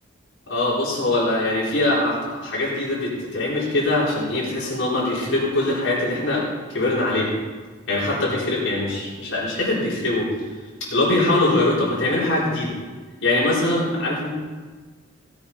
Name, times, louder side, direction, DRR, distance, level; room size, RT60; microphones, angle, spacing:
voice 1, 0.5-6.4 6.7-7.3 7.9-10.3 10.9-12.8 13.2-14.3, left 2 dB, 80° left, -7 dB, 4.3 m, -22 dB
17.0 x 7.1 x 5.5 m, 1.4 s
head